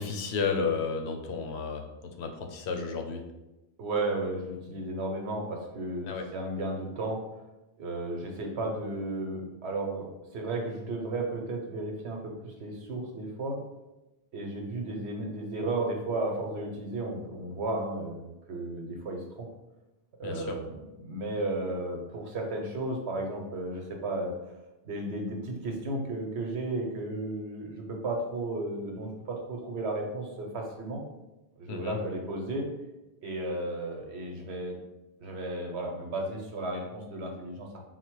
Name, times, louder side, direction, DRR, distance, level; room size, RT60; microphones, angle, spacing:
voice 1, 0.0-1.9 2.2-3.2 6.0-6.2 20.2-20.6 31.7-32.0, left 5 dB, 80° left, 5 dB, 0.9 m, -32 dB
voice 2, 3.8-7.2 7.8-13.6 14.3-19.5 20.2-24.3 24.8-31.0 31.6-32.7 33.2-34.8 35.2-37.8, right 2 dB, 85° right, 2 dB, 1.1 m, -34 dB
4.1 x 2.1 x 4.5 m, 1.0 s
omnidirectional pair, 1.1 m